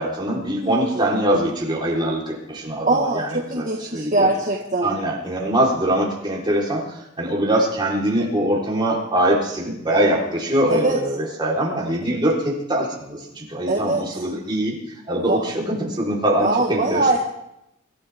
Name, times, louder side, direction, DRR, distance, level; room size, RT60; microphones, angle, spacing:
voice 1, 0.0-4.3 4.8-14.8 15.1-17.1, right 1 dB, 20° right, -3 dB, 3.8 m, -23 dB
voice 2, 2.9-5.0 10.7-11.0 13.7-14.0 15.2-15.4 16.4-17.2, right 2 dB, 40° right, 0 dB, 1.5 m, -22 dB
26.5 x 12.5 x 3.6 m, 0.81 s
head